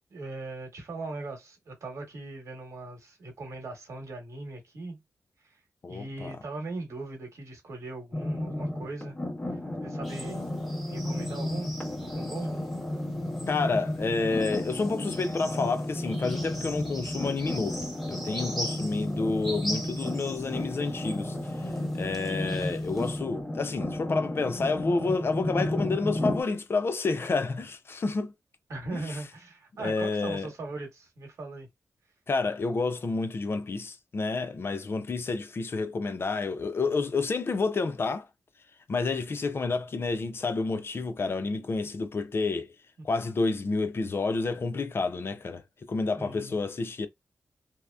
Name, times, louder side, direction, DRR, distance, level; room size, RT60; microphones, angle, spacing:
voice 1, 0.1-5.0 5.9-9.2 9.8-10.4 10.9-11.7 12.0-12.5 28.7-31.7 46.2-46.6, right 2 dB, 80° right, 1.1 m, -39 dB
voice 2, 5.8-6.4 13.5-21.4 21.9-28.3 28.9-29.2 29.8-30.5 32.3-38.3 38.9-42.7 43.0-45.6 45.9-47.1, left 3 dB, 50° left, 0.5 m, -29 dB
sound 1, 8.1-26.4, left 1 dB, 30° left, 1.1 m, -33 dB
sound 2, 10.0-23.2, equal, ahead, 0.7 m, -42 dB
2.8 x 2.1 x 2.2 m
cardioid pair, 80°, 5 cm